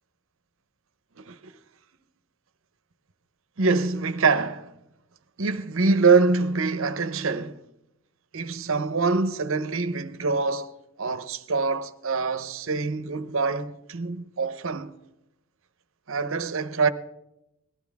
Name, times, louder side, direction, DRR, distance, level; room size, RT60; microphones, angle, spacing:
voice 1, 1.2-1.5 3.6-4.7 5.4-7.6 8.3-10.7 11.0-14.9 16.1-16.9, right 4 dB, 65° right, 0.8 m, -25 dB
19.5 x 14.0 x 3.5 m
head